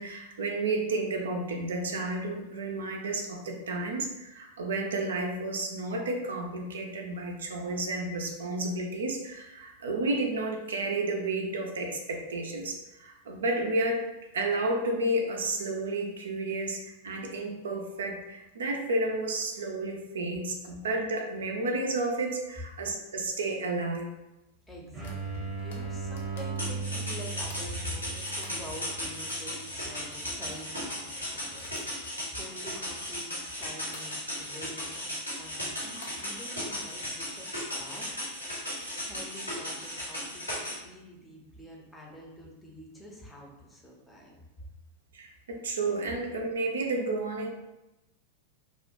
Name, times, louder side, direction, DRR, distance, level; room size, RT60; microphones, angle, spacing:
voice 1, 0.0-14.0 14.3-24.1 45.1-47.5, right 2 dB, 65° right, 2 dB, 0.3 m, -31 dB
voice 2, 24.7-38.2 39.0-44.4, left 1 dB, 10° left, -2 dB, 0.6 m, -46 dB
sound 1, 24.9-30.4, right 4 dB, 25° right, 0.7 m, -38 dB
sound 2, 25.0-28.9 29.3-33.5 33.9-34.5 34.8-35.1 35.8-36.3 36.6-37.8 38.3-38.7, left 2 dB, 60° left, 0.5 m, -51 dB
sound 3, 26.6-40.7, left 1 dB, 85° left, 1.2 m, -36 dB
2.3 x 2.1 x 2.9 m, 0.96 s
figure-of-eight pair, 90°, 0 cm